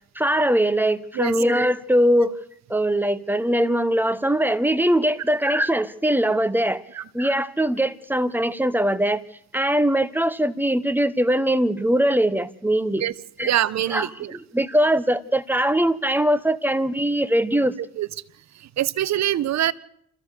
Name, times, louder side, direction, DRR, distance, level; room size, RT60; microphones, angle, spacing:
voice 1, 0.1-2.3 2.7-6.8 7.1-9.2 9.5-13.1 13.4-13.5 13.9-17.7, right 1 dB, 5° right, 13 dB, 1.2 m, -21 dB
voice 2, 13.4-14.4 18.0-18.1 18.6-19.7, right 12 dB, 65° right, 17 dB, 1.0 m, -24 dB
27.5 x 14.5 x 6.7 m, 0.71 s
cardioid pair, 90°, 30 cm